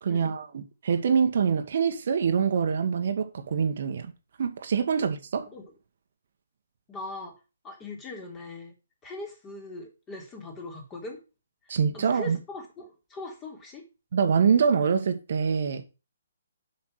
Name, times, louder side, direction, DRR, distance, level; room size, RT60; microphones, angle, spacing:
voice 1, 0.0-4.1 4.4-5.5 11.7-12.4 14.1-15.8, right 6 dB, 55° right, 1.4 m, -25 dB
voice 2, 6.9-7.3 7.6-8.7 9.0-11.2 11.6-13.9, left 2 dB, 20° left, 3.3 m, -40 dB
7.4 x 5.7 x 6.4 m
figure-of-eight pair, 135°, 0 cm